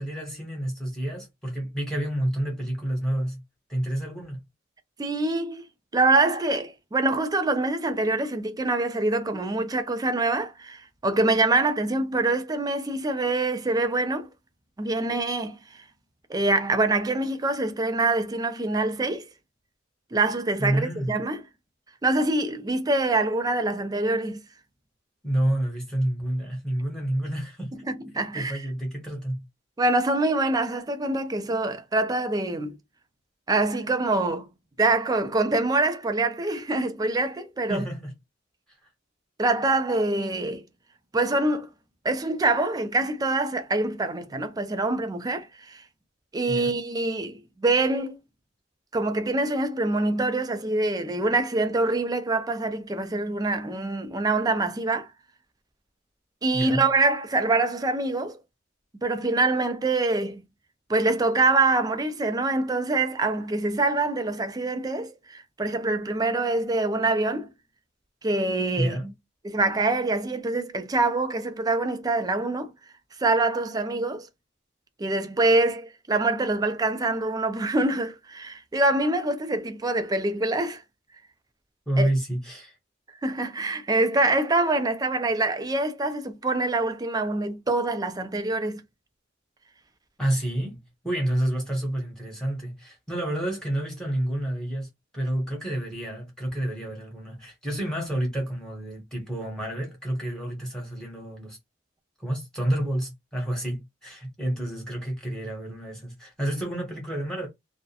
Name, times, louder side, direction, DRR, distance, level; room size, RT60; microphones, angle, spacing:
voice 1, 0.0-3.4 3.7-4.4 20.6-21.1 25.2-27.7 28.3-29.4 37.7-38.1 46.5-46.8 56.5-56.8 68.8-69.1 81.9-82.7 90.2-94.9 95.1-101.6 102.2-107.5, right 1 dB, 5° left, 0.9 m, -29 dB
voice 2, 5.0-5.6 5.9-14.3 14.8-15.8 16.3-19.3 20.1-21.4 22.0-24.4 27.9-28.6 29.8-32.8 33.5-34.5 34.8-37.8 39.4-40.6 41.1-41.7 42.0-45.8 46.3-48.2 48.9-55.1 56.4-58.4 59.0-60.4 60.9-67.5 68.2-69.0 69.4-72.7 73.2-74.3 75.0-80.8 82.0-82.1 83.2-88.8, right 2 dB, 20° right, 0.4 m, -25 dB
2.3 x 2.1 x 2.7 m
head